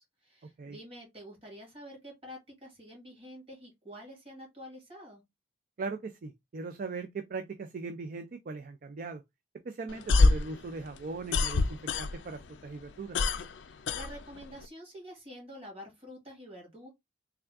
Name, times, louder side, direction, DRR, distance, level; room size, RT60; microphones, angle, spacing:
voice 1, 0.0-5.2 13.6-16.9, equal, 30° right, 2.1 m, -48 dB
voice 2, 5.8-9.2 9.6-13.2, right 4 dB, 45° right, 0.4 m, -39 dB
sound 1, 9.9-12.4 12.7-14.7, left 3 dB, 75° left, 0.4 m, -26 dB
3.5 x 2.3 x 3.4 m
head